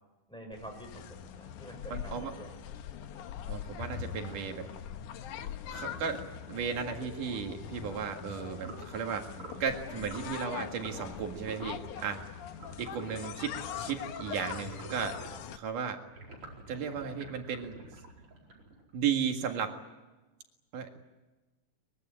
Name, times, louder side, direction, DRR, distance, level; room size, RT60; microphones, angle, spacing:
voice 1, 0.3-2.5 11.9-12.1, equal, ahead, 3 dB, 6.2 m, -47 dB
sound 1, 0.5-15.6, left 8 dB, 75° left, 2.5 m, -42 dB
voice 2, 1.9-2.3 3.5-4.7 5.7-6.2 6.5-9.3 9.6-12.2 12.8-15.2 15.5-16.0 16.7-17.8 18.9-19.8 20.7-21.0, right 7 dB, 80° right, 4 dB, 3.5 m, -35 dB
sound 2, 8.5-8.9 9.3-9.7 10.0-10.3 10.8-11.1 11.4-11.9 12.6-15.4 16.1-18.9, right 2 dB, 45° right, 5.6 m, -47 dB
23.5 x 22.5 x 8.8 m, 1.1 s
omnidirectional pair, 3.6 m